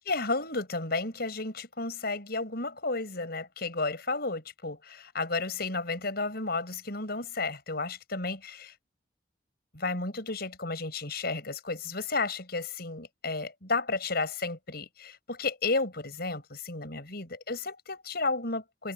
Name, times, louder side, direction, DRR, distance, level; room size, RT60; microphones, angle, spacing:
voice 1, 0.0-8.7 9.7-18.9, left 3 dB, 55° left, 7.0 m, -32 dB
head